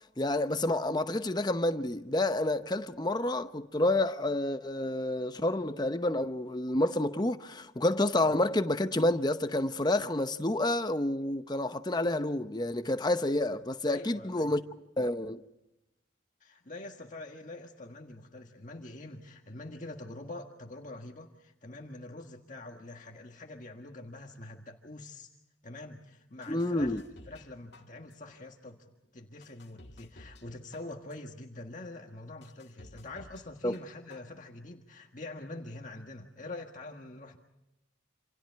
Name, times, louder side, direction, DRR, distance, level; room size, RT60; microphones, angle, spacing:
voice 1, 0.2-14.6 15.0-15.4 26.5-27.0 33.6-33.7, left 1 dB, 20° left, 0.8 m, -29 dB
voice 2, 13.9-14.5 16.4-25.3 25.6-27.0 27.3-37.4, left 2 dB, 40° left, 1.6 m, -45 dB
sound 1, 26.4-27.5 27.7-28.4 28.9-29.0 29.4-30.5 30.7-31.4 31.9-32.0 32.4-33.4 33.7-34.4 34.7-34.8, left 1 dB, 60° left, 2.0 m, -53 dB
28.5 x 27.0 x 4.7 m
head